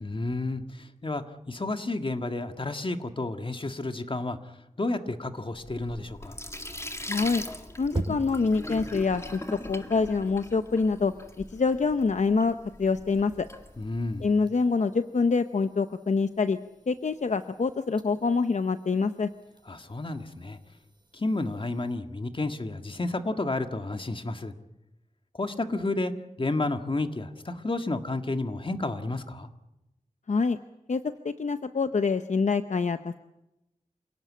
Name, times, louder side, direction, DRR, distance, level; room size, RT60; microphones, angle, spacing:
voice 1, 0.0-4.4 4.8-6.4 13.8-14.3 19.7-20.6 21.1-24.5 25.3-26.1 26.4-29.5, left 2 dB, 40° left, 7 dB, 1.8 m, -31 dB
Sink (filling or washing), 5.6-14.4, left 1 dB, 20° left, 2.1 m, -41 dB
voice 2, 7.1-7.4 7.8-9.4 9.7-11.1 11.5-13.5 14.2-16.6 16.9-19.3 30.3-30.6 30.9-33.2, left 4 dB, 65° left, 10 dB, 0.8 m, -26 dB
sound 1, 8.0-22.0, right 2 dB, 35° right, 6.4 m, -44 dB
27.5 x 18.0 x 8.6 m, 0.94 s
wide cardioid pair, 85°, 13 cm